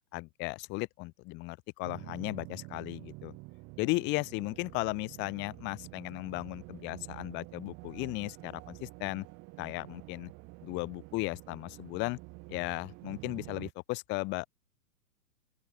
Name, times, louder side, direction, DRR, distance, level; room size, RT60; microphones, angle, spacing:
voice 1, 0.1-3.3 3.8-9.3 9.6-10.3 10.6-12.2 12.5-14.5, left 25 dB, 20° left, 1.0 m, -36 dB
sound 1, 1.8-13.7, right 25 dB, 30° right, 2.0 m, -48 dB
open air
hypercardioid pair, 135°, 49 cm